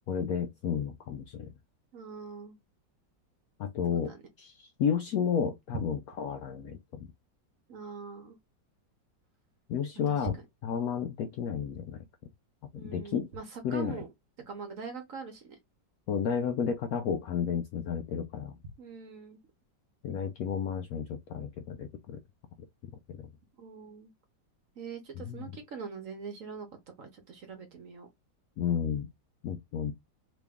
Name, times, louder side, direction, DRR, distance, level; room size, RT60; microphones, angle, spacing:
voice 1, 0.1-1.5 3.6-4.1 4.4-7.1 9.7-10.4 10.6-12.0 12.7-13.3 13.6-14.0 16.1-18.6 20.0-22.2 23.2-23.3 25.2-25.5 28.6-29.1 29.4-29.9, left 7 dB, 75° left, 0.8 m, -32 dB
voice 2, 1.9-2.6 3.9-4.2 7.7-8.4 10.2-10.3 12.7-14.1 14.5-15.6 18.8-19.4 23.6-24.1 24.8-26.7 27.0-28.1, right 5 dB, 55° right, 1.0 m, -42 dB
3.0 x 3.0 x 3.5 m
omnidirectional pair, 2.0 m